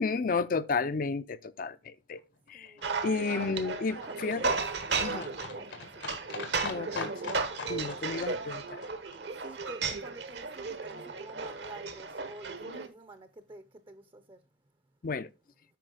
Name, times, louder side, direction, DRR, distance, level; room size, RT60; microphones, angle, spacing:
voice 1, 0.0-2.2 2.5-2.7 3.0-4.5 5.0-5.3 6.6-7.3 7.7-8.8 15.0-15.3, left 4 dB, 50° left, 0.5 m, -32 dB
Livestock farm animals working animals, 2.2-10.4 10.7-10.8 11.0-11.1 11.3-11.4 11.6-11.7 11.9-12.0 12.2-12.3 12.5-12.6 12.9-13.0, left 4 dB, 85° left, 2.0 m, -44 dB
voice 2, 2.5-2.9 3.4-3.5 3.9-4.6 5.4-6.1 9.4-14.4, right 2 dB, 30° right, 0.6 m, -49 dB
sound 1, 2.8-12.9, right 4 dB, 70° right, 1.1 m, -35 dB
9.2 x 5.4 x 3.8 m
head